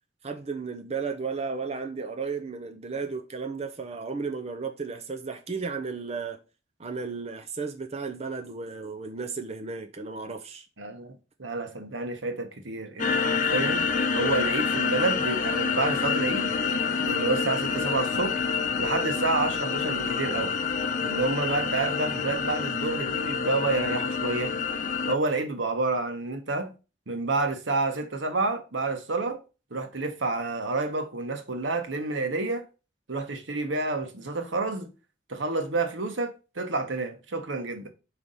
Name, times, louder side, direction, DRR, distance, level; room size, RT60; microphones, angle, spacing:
voice 1, 0.2-6.4 6.8-10.7, right 4 dB, 35° right, 0.7 m, -34 dB
voice 2, 10.8-13.8 14.1-16.5 17.0-18.4 18.8-20.6 21.0-24.5 25.1-26.7 27.1-29.4 29.7-32.6 33.1-34.9 35.3-37.9, right 3 dB, 90° right, 1.3 m, -29 dB
sound 1, 13.0-25.1, left 5 dB, 45° left, 0.8 m, -27 dB
5.1 x 4.8 x 5.5 m
head